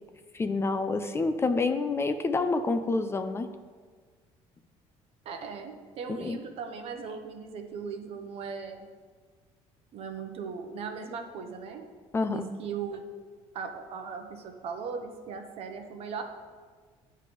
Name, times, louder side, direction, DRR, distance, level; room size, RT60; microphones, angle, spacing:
voice 1, 0.3-3.5 6.1-6.4 12.1-12.5, left 3 dB, 20° left, 8 dB, 0.3 m, -28 dB
voice 2, 5.2-8.9 9.9-11.9 12.3-13.0 13.5-16.2, right 5 dB, 55° right, 5 dB, 0.8 m, -38 dB
9.5 x 3.3 x 5.1 m, 1.5 s
cardioid pair, 130°, 12 cm